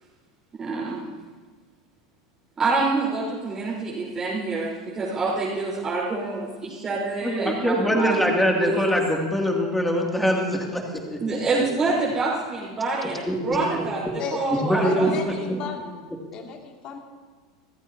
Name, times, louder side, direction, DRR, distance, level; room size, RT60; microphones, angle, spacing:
voice 1, 0.5-1.0 2.6-8.3 8.6-8.9 11.2-14.0 14.3-15.6, right 3 dB, 25° right, -7 dB, 4.1 m, -27 dB
voice 2, 7.2-10.8 11.1-11.2 13.3-13.4 13.7-13.8 14.5-15.1 15.5-15.6, equal, 5° left, 0 dB, 2.6 m, -23 dB
voice 3, 14.2-16.0 16.3-17.0, left 5 dB, 45° left, 2 dB, 2.5 m, -34 dB
28.0 x 14.5 x 2.9 m, 1.4 s
figure-of-eight pair, 85°, 2 cm